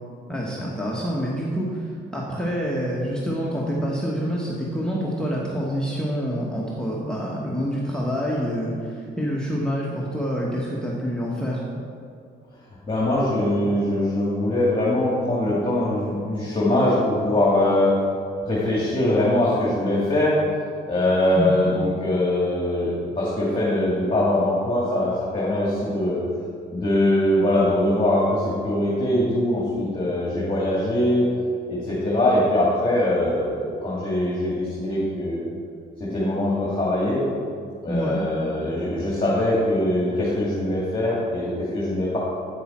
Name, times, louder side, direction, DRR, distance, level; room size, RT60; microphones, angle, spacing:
voice 1, 0.3-11.6 21.3-21.5 37.9-38.2, equal, 5° left, -5 dB, 1.2 m, -27 dB
voice 2, 12.9-17.9 18.4-20.4 20.9-26.2 26.7-31.3 31.7-35.5 36.0-37.2 37.8-42.2, left 1 dB, 25° left, -6 dB, 2.0 m, -22 dB
8.5 x 6.7 x 4.3 m, 2.4 s
cardioid pair, 90°, 20 cm